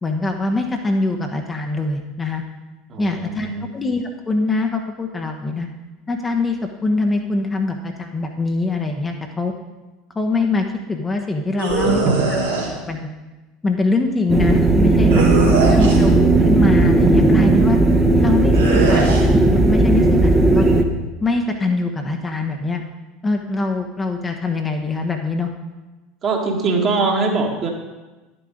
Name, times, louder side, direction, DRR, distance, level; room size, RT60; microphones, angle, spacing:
voice 1, 0.0-2.4 3.0-5.7 6.1-9.5 10.1-12.2 12.8-13.1 13.6-15.2 15.7-17.8 18.2-19.0 19.5-20.7 21.2-22.8 23.2-25.5, left 3 dB, 20° left, 3 dB, 1.0 m, -23 dB
voice 2, 2.9-3.7 11.8-12.3 15.1-16.0 26.2-27.7, right 3 dB, 35° right, 1 dB, 1.8 m, -22 dB
sound 1, 11.6-12.7 15.1-16.1 18.5-19.2, right 3 dB, 75° right, 1.9 m, -22 dB
sound 2, 14.3-20.8, right 2 dB, 15° right, 1.0 m, -15 dB
10.5 x 7.0 x 5.1 m, 1.2 s
figure-of-eight pair, 70°, 0 cm